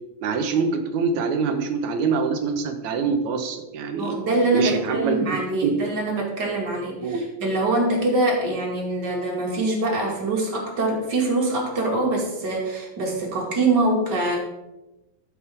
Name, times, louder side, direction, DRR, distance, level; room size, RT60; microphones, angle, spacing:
voice 1, 0.2-4.2 4.5-5.3 5.6-5.7 7.0-7.3, right 5 dB, 70° right, 6 dB, 2.1 m, -24 dB
voice 2, 3.9-14.4, right 2 dB, 35° right, -1 dB, 2.5 m, -24 dB
13.0 x 7.3 x 3.6 m, 0.99 s
omnidirectional pair, 3.7 m